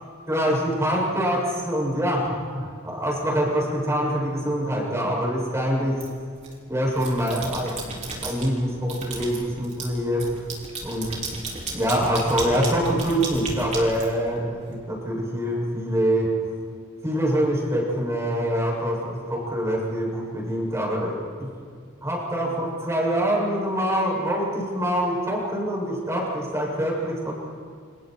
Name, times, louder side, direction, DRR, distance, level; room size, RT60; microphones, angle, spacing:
voice 1, 0.3-6.1 6.7-10.3 10.8-11.1 11.7-16.3 17.0-21.5 22.0-27.3, equal, 15° right, -3 dB, 7.3 m, -25 dB
sound 1, 6.0-6.5 6.9-8.5 8.9-14.7, right 3 dB, 35° right, 5.0 m, -34 dB
29.0 x 28.5 x 4.7 m, 2.2 s
head